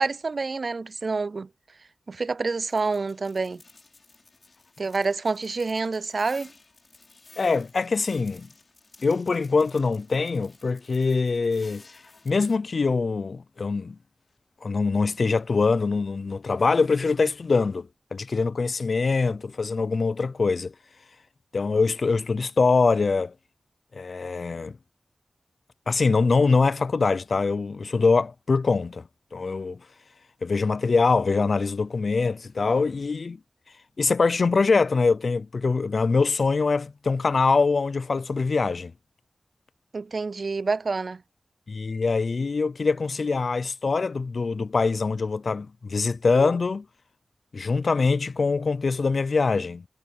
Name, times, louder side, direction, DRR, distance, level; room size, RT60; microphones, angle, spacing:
voice 1, 0.0-1.5 2.1-3.6 4.8-6.5 39.9-41.2, right 4 dB, 65° right, 0.3 m, -27 dB
sound 1, 2.6-12.6, left 3 dB, 55° left, 5.7 m, -54 dB
voice 2, 7.4-8.5 9.0-11.8 12.2-14.0 14.6-20.7 21.5-23.3 23.9-24.8 25.9-29.0 29.3-29.8 30.4-33.4 34.0-38.9 41.7-46.9 47.5-49.8, left 4 dB, 75° left, 0.5 m, -23 dB
wide cardioid pair, 70°, 0 cm